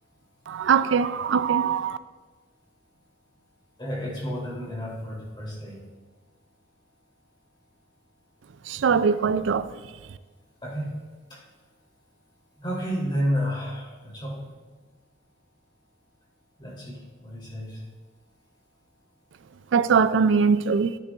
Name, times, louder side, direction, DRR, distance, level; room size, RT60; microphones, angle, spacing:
voice 1, 0.5-2.0 8.7-9.7 19.7-20.9, right 6 dB, 85° right, 0.4 m, -21 dB
voice 2, 3.8-5.8 10.6-11.0 11.3-11.4 12.6-14.5 16.6-17.8, equal, 25° left, 3.4 m, -31 dB
14.0 x 10.0 x 2.5 m
head